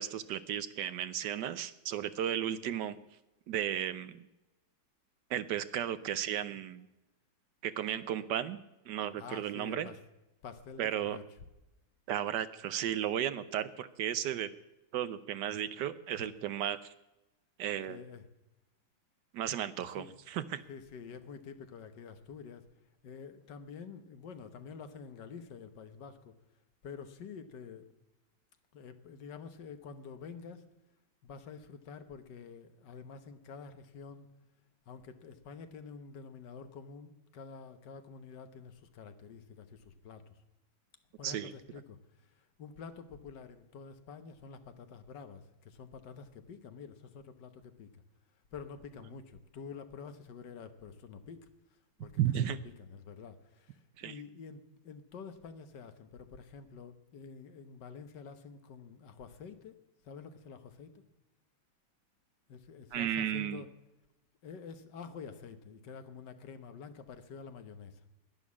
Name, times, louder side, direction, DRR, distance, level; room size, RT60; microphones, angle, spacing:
voice 1, 0.0-3.0 3.5-4.3 5.3-6.9 7.6-8.6 8.9-9.9 10.8-11.2 12.1-14.5 14.9-16.8 17.6-18.0 19.3-20.6 41.2-41.5 52.2-52.6 54.0-54.1 62.9-63.6, right 10 dB, 70° right, 15 dB, 1.2 m, -34 dB
voice 2, 9.2-10.0 10.4-11.2 16.2-16.3 17.9-18.2 19.8-20.1 20.7-22.7 23.0-26.4 26.8-27.9 28.7-30.7 31.2-34.3 34.9-40.4 41.2-48.0 48.5-59.8 60.0-61.0 62.5-63.7 64.4-68.0, left 6 dB, 65° left, 10 dB, 1.7 m, -48 dB
11.5 x 10.5 x 8.3 m, 0.95 s
omnidirectional pair, 2.1 m